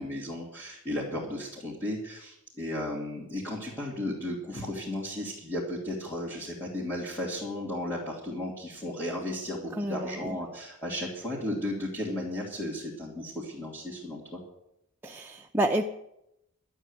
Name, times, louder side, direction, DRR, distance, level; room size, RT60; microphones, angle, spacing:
voice 1, 0.0-14.4, left 1 dB, 10° left, -5 dB, 2.7 m, -34 dB
voice 2, 9.8-10.4 15.0-15.8, right 1 dB, 10° right, 1 dB, 0.6 m, -29 dB
12.0 x 8.2 x 9.7 m, 0.81 s
head